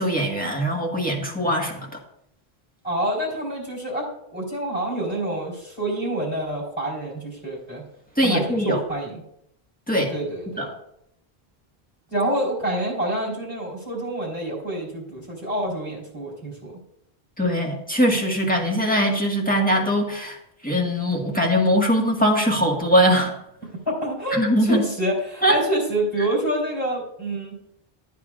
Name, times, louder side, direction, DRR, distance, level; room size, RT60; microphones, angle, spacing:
voice 1, 0.0-1.9 8.2-8.8 9.9-10.1 10.6-10.7 17.4-20.4 20.6-23.3 24.3-24.8 25.4-25.6, equal, 10° left, -1 dB, 1.6 m, -21 dB
voice 2, 2.8-7.8 8.2-9.2 10.1-10.7 12.1-16.7 23.9-27.6, right 1 dB, 30° left, -4 dB, 3.8 m, -27 dB
13.5 x 9.4 x 2.5 m, 0.75 s
omnidirectional pair, 1.1 m